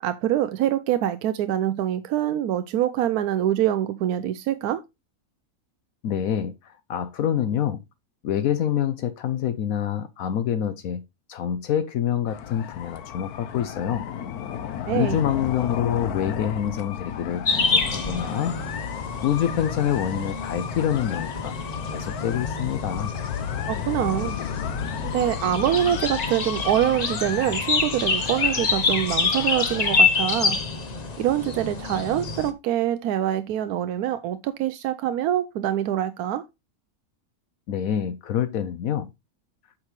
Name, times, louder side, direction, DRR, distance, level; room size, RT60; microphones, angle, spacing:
voice 1, 0.0-4.8 14.9-15.2 23.7-24.4 25.0-30.6 31.2-36.4, right 11 dB, 85° right, 1.1 m, -25 dB
voice 2, 6.0-7.8 8.2-11.0 11.3-14.0 14.9-18.6 19.2-21.5 21.9-23.1 37.7-39.1, left 9 dB, 70° left, 1.1 m, -26 dB
sound 1, 12.3-30.0, left 9 dB, 90° left, 1.3 m, -33 dB
sound 2, 17.4-32.5, left 4 dB, 35° left, 0.8 m, -27 dB
8.8 x 6.0 x 3.1 m
omnidirectional pair, 1.6 m